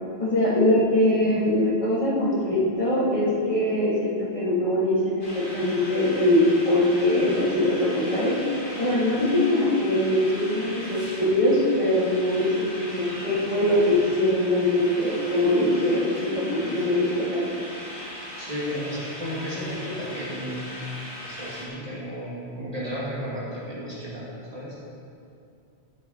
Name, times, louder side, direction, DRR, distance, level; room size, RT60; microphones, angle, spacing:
voice 1, 0.2-5.2 5.5-6.4 6.7-8.3 8.8-17.5, left 1 dB, 30° left, -9 dB, 3.6 m, -22 dB
sound 1, 5.2-21.7, equal, 50° left, 2.9 m, -39 dB
voice 2, 18.4-20.7 21.2-24.8, equal, 35° right, -7 dB, 2.6 m, -33 dB
17.0 x 8.0 x 4.4 m, 2.5 s
omnidirectional pair, 1.1 m